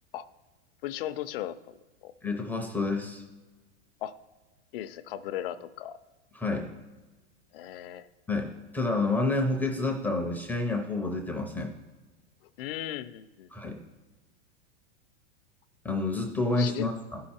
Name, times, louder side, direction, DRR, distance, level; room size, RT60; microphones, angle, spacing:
voice 1, 0.8-1.7 2.0-2.1 4.0-4.1 4.7-6.0 7.5-8.1 12.6-13.5 16.5-16.9, left 12 dB, 55° left, 12 dB, 0.5 m, -36 dB
voice 2, 2.2-3.2 6.3-6.7 8.3-11.7 13.5-13.8 15.8-17.2, left 2 dB, 5° left, 0 dB, 0.5 m, -29 dB
13.5 x 5.6 x 4.3 m, 1.2 s
supercardioid pair, 150°, 35 cm